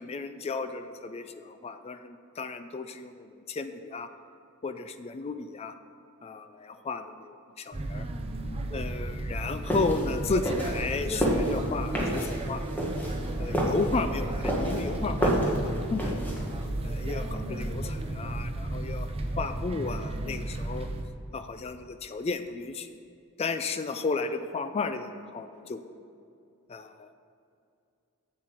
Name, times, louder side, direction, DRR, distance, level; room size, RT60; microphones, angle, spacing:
voice 1, 0.0-4.1 4.6-5.7 6.2-8.1 8.7-12.6 13.4-16.2 16.8-20.9 21.3-23.0 23.4-25.8 26.7-27.1, left 4 dB, 30° left, 10 dB, 0.3 m, -34 dB
sound 1, 7.7-21.0, right 1 dB, 25° right, 0.5 m, -33 dB
sound 2, 9.7-16.6, equal, 10° left, 1.3 m, -29 dB
7.6 x 7.5 x 4.4 m, 2.5 s
head